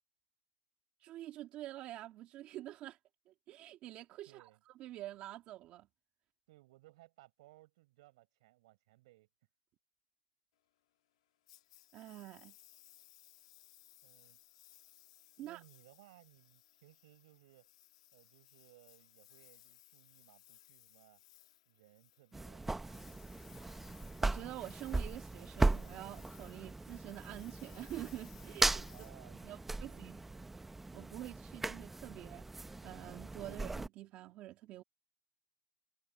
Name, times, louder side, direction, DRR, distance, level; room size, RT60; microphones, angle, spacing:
voice 1, 1.0-3.0 3.3-4.5 4.8-5.9 11.9-12.5 15.4-15.6 24.2-28.9 29.3-30.2 30.9-32.4 32.8-34.8, right 14 dB, 30° right, 2.4 m, -47 dB
voice 2, 4.2-4.6 6.5-9.3 14.0-14.4 15.4-17.7 18.1-21.2 21.7-23.4 28.9-30.4, right 18 dB, 60° right, 6.2 m, -63 dB
Engine, 11.5-29.9, left 15 dB, 70° left, 2.3 m, -63 dB
sound 1, 22.3-33.9, right 2 dB, 5° right, 0.6 m, -38 dB
supercardioid pair, 155°, 4 cm